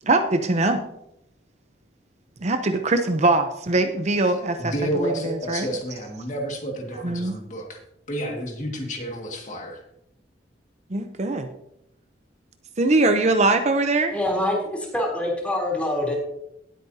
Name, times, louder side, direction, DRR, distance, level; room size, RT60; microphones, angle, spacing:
voice 1, 0.0-0.8 2.4-5.7 7.0-7.3 10.9-11.5 12.8-14.2, right 2 dB, 40° right, 7 dB, 0.7 m, -22 dB
voice 2, 4.6-7.8 8.1-9.8, right 1 dB, 45° left, 1 dB, 2.0 m, -30 dB
voice 3, 14.1-16.2, left 1 dB, 10° left, -2 dB, 3.3 m, -25 dB
18.5 x 8.6 x 2.8 m, 0.79 s
head